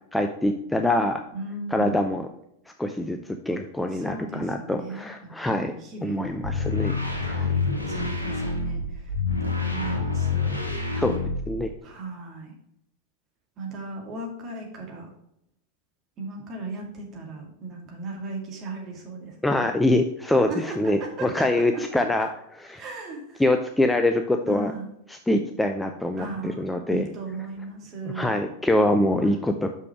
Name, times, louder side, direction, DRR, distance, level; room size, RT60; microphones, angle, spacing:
voice 1, 0.1-1.2 1.7-2.3 2.8-5.7 6.0-6.9 7.3-7.4 11.0-11.2 11.5-11.7 19.4-20.5 20.8-22.3 22.5-22.8 23.4-24.7 25.3-27.1 28.1-29.7, left 1 dB, 5° left, 5 dB, 0.5 m, -24 dB
voice 2, 1.3-2.1 3.9-6.4 7.4-10.6 11.8-12.5 13.6-15.1 16.2-19.7 20.5-21.8 22.2-22.3 22.8-23.4 24.4-24.9 26.2-28.4 29.2-29.5, right 3 dB, 30° right, 1 dB, 2.1 m, -37 dB
sound 1, 6.4-11.8, left 4 dB, 85° left, 1.5 m, -27 dB
6.1 x 5.6 x 4.7 m, 0.77 s
figure-of-eight pair, 90°, 0 cm